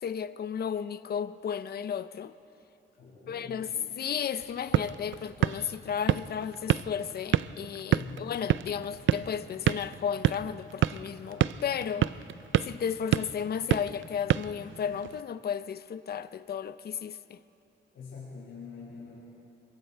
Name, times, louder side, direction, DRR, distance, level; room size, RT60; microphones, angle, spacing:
voice 1, 0.0-2.3 3.3-12.1 12.6-17.4, left 8 dB, 50° left, 0.6 m, -34 dB
voice 2, 3.0-3.8 7.9-8.3 17.9-19.2, left 5 dB, 90° left, 5.7 m, -45 dB
sound 1, 4.4-15.2, right 12 dB, 75° right, 0.5 m, -30 dB
25.5 x 23.0 x 4.5 m
cardioid pair, 105°, 20 cm